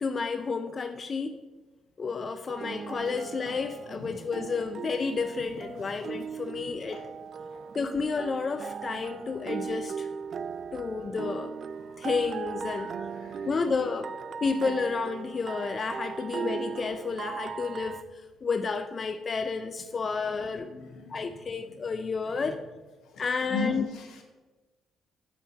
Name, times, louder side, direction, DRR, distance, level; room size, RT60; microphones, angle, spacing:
voice 1, 0.0-1.4 2.0-7.0 7.7-10.1 10.7-11.6 12.0-12.9 13.5-14.1 14.4-20.7 21.1-22.6 23.2-23.8, left 4 dB, 40° left, 8 dB, 0.4 m, -31 dB
sound 1, 2.5-18.0, right 6 dB, 55° right, 0.3 m, -38 dB
voice 2, 3.9-4.4 5.8-5.9 6.9-7.0 7.5-7.6 11.8-12.1 12.7-13.5 16.2-16.3 20.6-21.4 21.7-21.8 22.4-22.5 23.0-23.2 23.5-24.2, left 3 dB, 80° left, 3 dB, 1.3 m, -39 dB
7.2 x 4.4 x 6.1 m, 1.2 s
cardioid pair, 90°, 0 cm